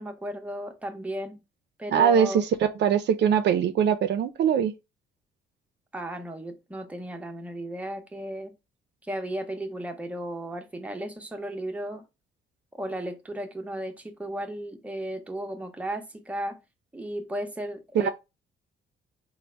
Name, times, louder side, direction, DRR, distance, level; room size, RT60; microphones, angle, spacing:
voice 1, 0.0-1.4 1.8-2.4 5.9-8.6 9.0-12.0 12.8-16.6 16.9-18.1, right 1 dB, 5° right, 0.6 m, -35 dB
voice 2, 1.9-4.7 17.9-18.1, right 8 dB, 60° right, 0.4 m, -22 dB
3.9 x 2.0 x 3.3 m
cardioid pair, 90°, 20 cm